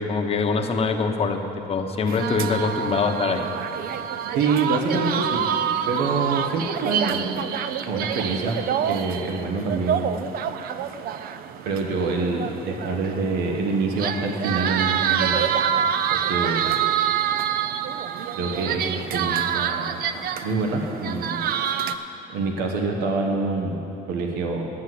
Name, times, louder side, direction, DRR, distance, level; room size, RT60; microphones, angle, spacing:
voice 1, 0.0-1.4 1.7-3.5, left 4 dB, 35° left, 4 dB, 0.9 m, -23 dB
sound 1, 2.1-21.9, right 9 dB, 65° right, 0.5 m, -27 dB
voice 2, 4.3-5.4 5.9-7.4 7.9-10.2 11.6-15.5 16.1-16.9 18.3-20.0 20.4-21.5 22.3-24.7, right 3 dB, 85° right, 2 dB, 1.1 m, -26 dB
9.9 x 7.9 x 7.6 m, 2.9 s
cardioid pair, 110°, 17 cm